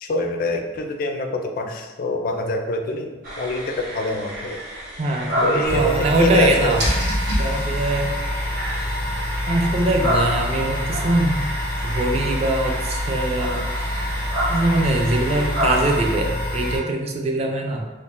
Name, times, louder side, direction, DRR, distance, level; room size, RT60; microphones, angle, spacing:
voice 1, 0.0-4.6 5.4-6.8, left 1 dB, 50° left, 4 dB, 0.3 m, -25 dB
sound 1, 3.2-16.1, equal, 50° right, 0.8 m, -30 dB
voice 2, 5.0-6.8 7.4-8.1 9.5-11.4 11.8-13.6 14.5-17.9, right 2 dB, 35° right, 2 dB, 0.3 m, -22 dB
sound 2, 5.6-16.8, left 1 dB, 75° right, 1.4 m, -26 dB
3.7 x 2.1 x 2.4 m, 1.2 s
head